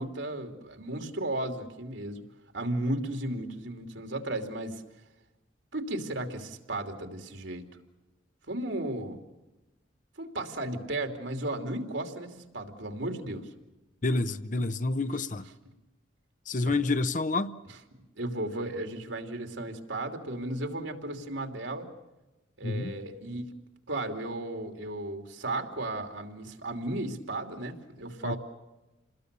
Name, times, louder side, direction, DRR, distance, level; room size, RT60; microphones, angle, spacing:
voice 1, 0.0-2.2 2.5-4.8 5.7-7.6 8.5-9.2 10.2-13.5 16.6-16.8 18.2-21.9 22.6-23.6 23.9-28.4, right 1 dB, 75° right, 2.9 m, -34 dB
voice 2, 14.0-15.5 16.5-17.5 22.6-22.9 28.2-28.4, left 3 dB, 40° left, 0.8 m, -28 dB
28.5 x 21.0 x 6.8 m
head